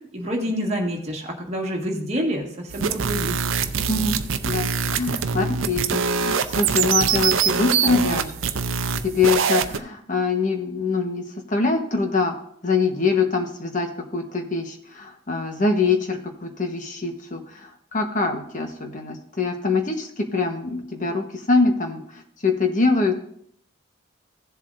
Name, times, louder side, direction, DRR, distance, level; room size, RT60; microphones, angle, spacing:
voice 1, 0.1-3.3, equal, 30° right, -1 dB, 1.8 m, -27 dB
sound 1, 2.7-9.8, right 6 dB, 75° right, 0.6 m, -23 dB
voice 2, 3.9-4.2 4.4-8.3 9.0-12.4 12.6-23.2, left 4 dB, 40° left, 4 dB, 1.2 m, -24 dB
15.5 x 7.4 x 2.6 m, 0.67 s
head